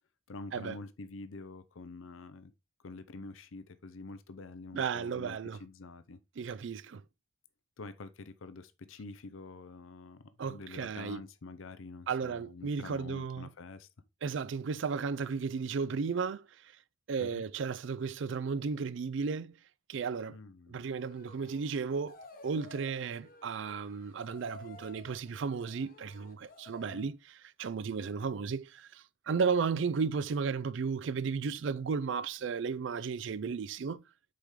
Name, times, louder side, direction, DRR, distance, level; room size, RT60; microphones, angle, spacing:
voice 1, 0.3-2.5 2.8-6.2 7.8-13.9 17.2-17.4 20.3-20.9 26.8-27.1, left 3 dB, 80° left, 0.6 m, -47 dB
voice 2, 4.7-5.6 6.4-7.0 10.4-11.2 12.1-13.5 14.2-16.4 17.1-19.5 19.9-20.4 20.7-22.2 22.4-27.2 27.6-34.0, right 5 dB, 65° right, 0.4 m, -34 dB
sound 1, 21.0-27.1, left 3 dB, 45° left, 1.1 m, -55 dB
6.9 x 4.9 x 3.6 m
head